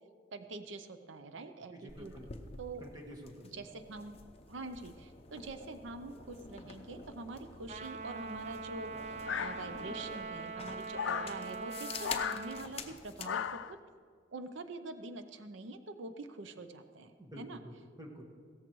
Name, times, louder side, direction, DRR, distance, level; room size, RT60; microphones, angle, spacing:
voice 1, 0.3-1.7 2.0-2.1 2.6-2.8 3.5-4.2 4.5-13.8 14.3-17.6, right 3 dB, 80° right, 9 dB, 0.6 m, -45 dB
voice 2, 1.7-2.3 2.8-3.6 17.2-18.2, equal, 20° right, 1 dB, 1.5 m, -49 dB
sound 1, 1.9-13.3, left 5 dB, 30° left, 0.7 m, -48 dB
Trumpet, 7.7-12.7, right 4 dB, 35° right, 0.5 m, -42 dB
sound 2, 9.3-10.0 10.9-11.4 12.0-12.4 13.2-13.8, left 8 dB, 80° left, 0.4 m, -36 dB
16.5 x 14.0 x 3.1 m, 2.1 s
head